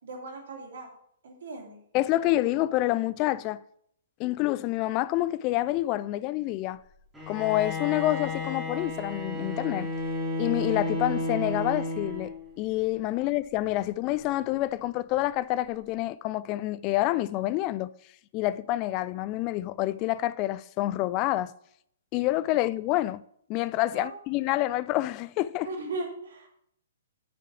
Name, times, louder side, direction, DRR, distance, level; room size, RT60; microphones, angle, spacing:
voice 1, 0.0-0.9 1.2-1.8 13.1-13.3 23.9-24.1 25.6-26.5, right 3 dB, 55° right, 3.0 m, -37 dB
voice 2, 1.9-3.6 4.2-6.8 7.3-9.9 10.4-17.9 18.3-21.5 22.1-23.2 23.5-25.7, left 16 dB, 30° left, 0.3 m, -27 dB
Bowed string instrument, 7.1-12.5, left 2 dB, 5° right, 3.0 m, -32 dB
7.6 x 6.8 x 6.1 m
figure-of-eight pair, 120°, 0 cm